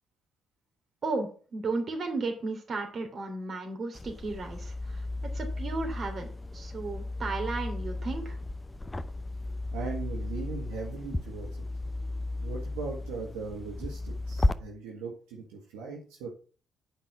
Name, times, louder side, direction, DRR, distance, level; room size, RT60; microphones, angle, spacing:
voice 1, 1.0-5.0 5.3-8.4, right 3 dB, 50° right, 4 dB, 3.2 m, -34 dB
sound 1, 3.9-14.5, left 2 dB, 20° left, 0.8 m, -34 dB
voice 2, 9.7-11.6 12.4-16.3, right 4 dB, 85° right, -1 dB, 1.7 m, -39 dB
8.5 x 5.4 x 6.2 m, 0.39 s
hypercardioid pair, 50°, 0 cm